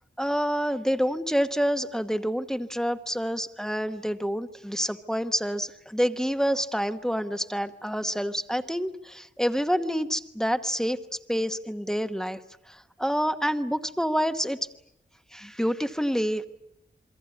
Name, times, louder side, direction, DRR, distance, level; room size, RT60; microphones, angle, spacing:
voice 1, 0.2-12.4 12.7-14.6 15.3-16.4, equal, 5° left, 9 dB, 1.1 m, -28 dB
27.5 x 23.5 x 8.5 m, 0.80 s
wide cardioid pair, 120°, 19 cm